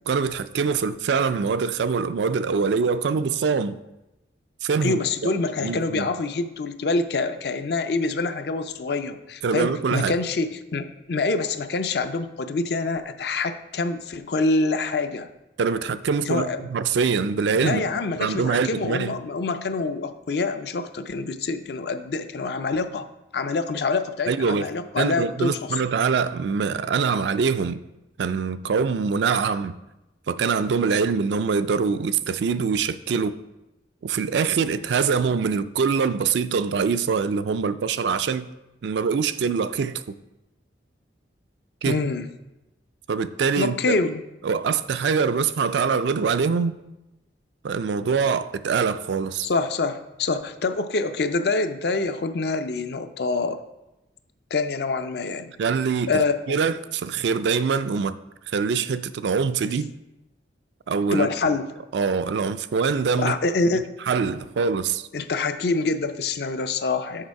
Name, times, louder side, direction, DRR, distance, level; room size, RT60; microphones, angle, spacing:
voice 1, 0.1-3.8 4.6-5.3 5.6-6.1 9.4-10.1 15.6-17.8 18.2-19.1 24.3-24.7 25.0-27.8 28.2-29.8 30.3-33.4 34.0-38.5 38.8-40.0 41.8-42.0 43.1-44.0 44.4-46.8 47.6-49.5 55.6-56.1 56.5-58.2 58.5-59.9 60.9-61.3 61.9-63.4 64.1-65.1, right 5 dB, 70° right, 0.4 m, -24 dB
voice 2, 4.8-15.3 16.2-16.7 17.6-23.1 23.3-25.7 41.8-42.3 43.6-44.2 49.4-53.6 54.5-55.5 56.1-56.6 61.1-61.6 63.2-63.9 65.1-67.2, left 3 dB, 60° left, 0.5 m, -26 dB
6.5 x 5.7 x 4.7 m
head